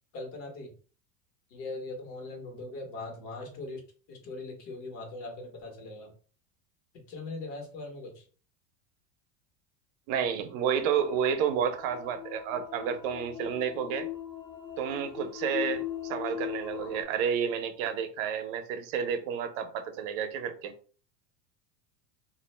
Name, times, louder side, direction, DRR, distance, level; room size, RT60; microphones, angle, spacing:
voice 1, 0.1-0.7 1.5-3.8 4.1-6.1 6.9-8.2, left 2 dB, 55° left, 1.2 m, -40 dB
voice 2, 10.1-14.1 14.8-20.7, right 7 dB, 65° right, 0.6 m, -30 dB
sound 1, 10.8-17.0, left 12 dB, 10° left, 0.5 m, -39 dB
2.4 x 2.0 x 3.1 m
supercardioid pair, 130°, 42 cm